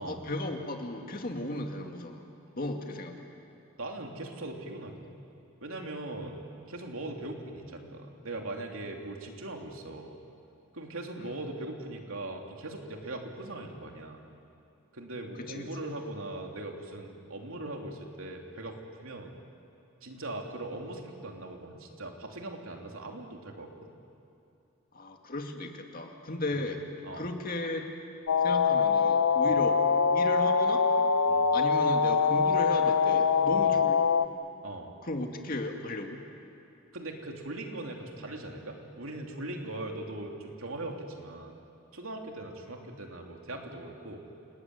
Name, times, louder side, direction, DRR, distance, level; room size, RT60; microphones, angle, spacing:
voice 1, 0.0-2.2 2.6-3.2 11.2-11.4 15.4-15.7 24.9-26.8 27.1-27.9 28.4-29.8 30.1-30.9 31.5-34.1 35.0-36.2, left 1 dB, 45° left, 3 dB, 2.3 m, -35 dB
voice 2, 3.8-5.0 5.6-6.4 6.7-10.1 10.7-14.2 14.9-19.3 20.0-23.9 26.6-26.7 27.0-27.3 29.5-29.7 31.3-31.5 33.6-33.8 34.6-34.9 36.9-41.6 41.9-44.2, right 2 dB, 75° right, 2 dB, 3.0 m, -40 dB
sound 1, 28.3-34.3, left 5 dB, 85° left, 0.8 m, -24 dB
28.5 x 19.0 x 9.6 m, 2.7 s
head